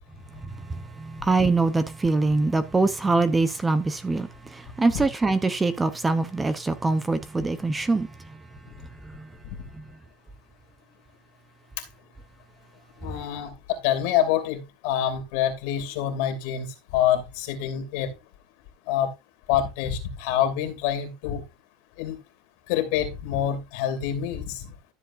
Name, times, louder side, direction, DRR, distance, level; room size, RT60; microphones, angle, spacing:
voice 1, 1.2-4.3 4.8-8.1, right 3 dB, 10° right, 0.7 m, -23 dB
voice 2, 13.0-18.1 18.9-19.1 19.5-21.4 22.0-22.2 22.7-24.7, left 10 dB, 65° left, 2.6 m, -26 dB
13.0 x 7.4 x 2.6 m
supercardioid pair, 155°, 0 cm